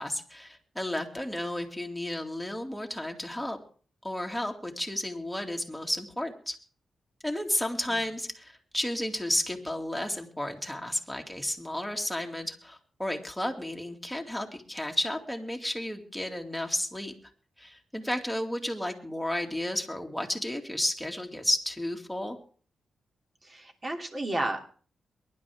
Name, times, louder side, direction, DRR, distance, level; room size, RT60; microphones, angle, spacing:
voice 1, 0.0-3.6 4.0-6.6 7.2-17.1 17.6-22.4, left 1 dB, ahead, 2 dB, 2.3 m, -32 dB
voice 2, 23.4-24.6, right 1 dB, 35° right, 3 dB, 2.7 m, -32 dB
23.0 x 11.0 x 3.5 m, 0.41 s
cardioid pair, 75°, 0 cm